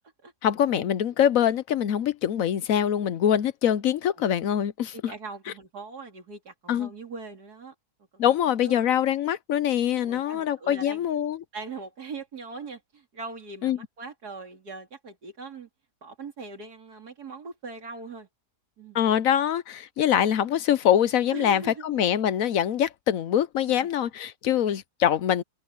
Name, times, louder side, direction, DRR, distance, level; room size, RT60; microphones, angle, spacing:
voice 1, 0.4-5.1 6.7-6.9 8.2-11.4 13.6-13.8 18.9-25.4, left 10 dB, 65° left, 1.0 m, -24 dB
voice 2, 4.9-7.7 8.1-8.8 10.0-11.1 11.5-15.7 16.0-18.3 18.8-19.0 21.3-22.0 23.8-23.9, right 4 dB, 85° right, 3.3 m, -41 dB
omnidirectional pair, 1.6 m